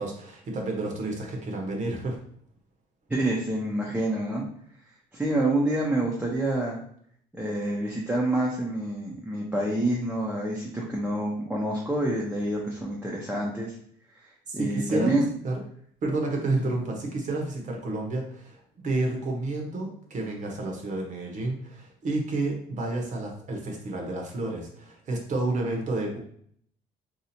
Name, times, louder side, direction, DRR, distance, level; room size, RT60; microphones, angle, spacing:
voice 1, 0.0-2.2 14.5-15.5 16.0-26.2, right 2 dB, 45° right, 0 dB, 1.0 m, -30 dB
voice 2, 3.1-4.4 5.1-6.8 7.3-13.7 14.5-15.3, right 1 dB, 5° right, -4 dB, 0.7 m, -27 dB
2.8 x 2.4 x 4.2 m, 0.63 s
cardioid pair, 110°, 17 cm